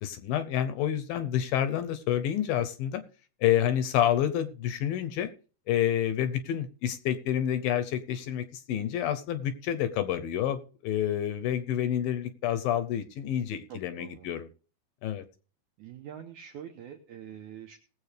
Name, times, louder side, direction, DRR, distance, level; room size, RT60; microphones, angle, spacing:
voice 1, 0.0-3.0 3.4-5.3 5.7-14.5 15.0-15.2, left 10 dB, 75° left, 11 dB, 2.3 m, -28 dB
voice 2, 13.7-14.3 15.8-17.8, right 9 dB, 80° right, 4 dB, 1.8 m, -45 dB
19.5 x 7.8 x 3.3 m, 0.38 s
omnidirectional pair, 4.6 m